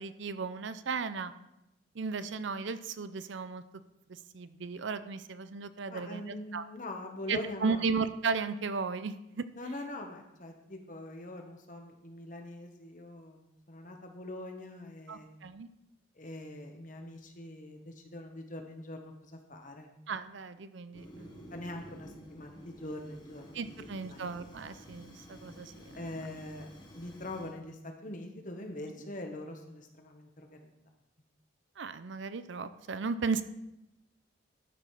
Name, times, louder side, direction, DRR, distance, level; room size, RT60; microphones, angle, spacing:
voice 1, 0.0-1.3 1.9-3.6 4.1-6.6 7.3-9.4 15.1-15.7 20.1-21.5 23.5-25.7 31.8-33.4, right 4 dB, 65° right, 12 dB, 0.5 m, -35 dB
voice 2, 5.9-7.9 9.5-15.3 16.1-19.9 21.5-24.2 25.9-26.7 26.9-30.7, left 1 dB, 40° left, 4 dB, 1.2 m, -43 dB
Fire, 20.9-27.6, equal, 20° left, 1.3 m, -51 dB
11.5 x 5.1 x 5.7 m, 0.88 s
head